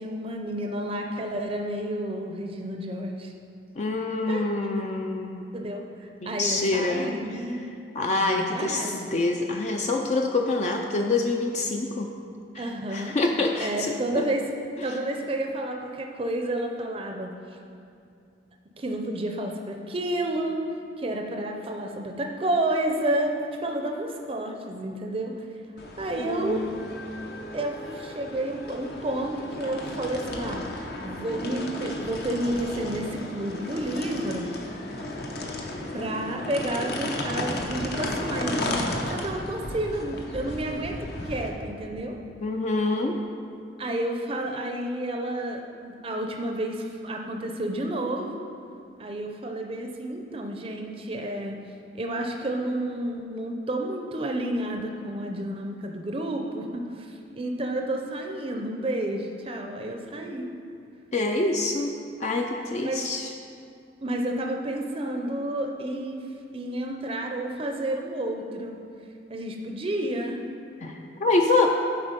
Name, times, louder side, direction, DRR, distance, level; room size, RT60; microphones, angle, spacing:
voice 1, 0.0-3.3 4.3-4.5 5.5-7.7 8.2-9.1 12.5-13.2 13.6-14.5 14.8-17.3 18.8-20.6 21.0-23.4 23.6-25.5 26.0-26.6 27.5-30.6 31.0-34.5 35.6-35.7 35.9-38.8 39.1-42.2 43.8-48.4 49.0-51.6 51.9-60.5 62.8-63.0 64.0-66.2 66.5-68.8 69.3-70.4, right 1 dB, 30° right, 2 dB, 0.6 m, -30 dB
voice 2, 3.8-5.5 6.2-7.1 7.9-12.1 12.6-12.7 12.9-13.9 26.2-26.9 42.4-43.2 61.1-62.0 62.2-63.3 70.8-71.7, left 2 dB, 40° left, 2 dB, 0.4 m, -26 dB
sound 1, 25.8-41.5, left 1 dB, 60° left, 0.8 m, -34 dB
11.5 x 4.3 x 5.2 m, 2.5 s
head